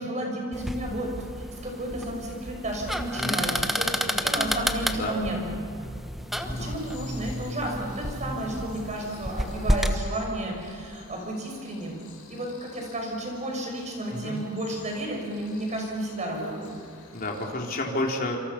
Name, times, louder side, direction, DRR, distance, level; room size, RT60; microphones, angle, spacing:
voice 1, 0.0-5.6 6.5-12.0 12.3-16.7, right 1 dB, 35° right, 0 dB, 6.3 m, -32 dB
sound 1, 0.5-10.0, equal, ahead, 1.2 m, -30 dB
voice 2, 3.2-3.5 4.9-5.2 6.4-6.8 14.1-14.4 17.1-18.4, left 2 dB, 40° left, 0 dB, 3.5 m, -31 dB
Cricket, 6.3-17.4, left 4 dB, 75° left, 5.7 m, -50 dB
27.5 x 26.0 x 5.9 m, 2.4 s
head